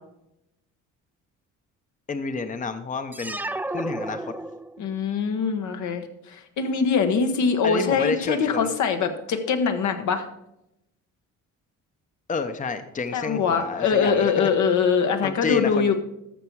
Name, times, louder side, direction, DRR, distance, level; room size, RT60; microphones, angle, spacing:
voice 1, 2.1-3.4 3.7-4.3 7.6-8.7 12.3-14.5 15.2-15.9, left 4 dB, 25° left, 9 dB, 0.8 m, -29 dB
sound 1, 3.1-5.0, right 2 dB, 5° right, 0.4 m, -32 dB
voice 2, 4.8-10.3 13.1-15.9, left 5 dB, 75° left, 6 dB, 1.3 m, -23 dB
13.0 x 6.7 x 4.7 m, 0.86 s
cardioid pair, 90°, 30 cm